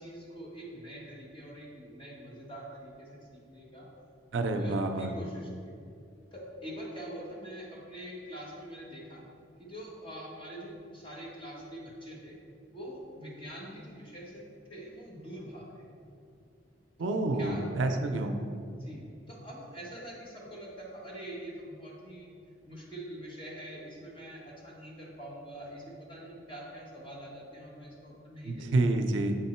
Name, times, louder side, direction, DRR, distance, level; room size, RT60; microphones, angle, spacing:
voice 1, 0.0-3.9 4.6-5.7 6.3-9.2 9.6-12.4 12.7-14.4 14.7-15.8 17.0-18.0 18.7-22.3 22.7-28.7, right 1 dB, 30° left, -4 dB, 1.2 m, -44 dB
voice 2, 4.3-5.1 17.0-18.4 28.5-29.4, right 2 dB, 90° right, 6 dB, 0.5 m, -28 dB
7.7 x 3.6 x 4.3 m, 2.4 s
head